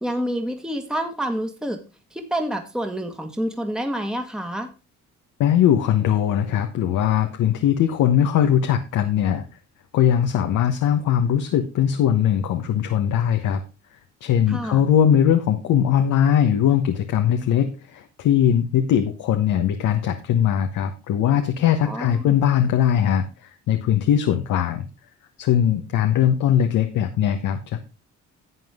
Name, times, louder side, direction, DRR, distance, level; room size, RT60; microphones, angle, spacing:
voice 1, 0.0-1.8 2.1-4.7 14.5-14.8 21.8-22.4, equal, ahead, 5 dB, 1.5 m, -28 dB
voice 2, 5.4-9.4 9.9-13.6 14.2-24.8 25.4-27.8, left 9 dB, 85° left, 6 dB, 1.1 m, -20 dB
11.0 x 7.7 x 3.6 m, 0.30 s
cardioid pair, 90°, 30 cm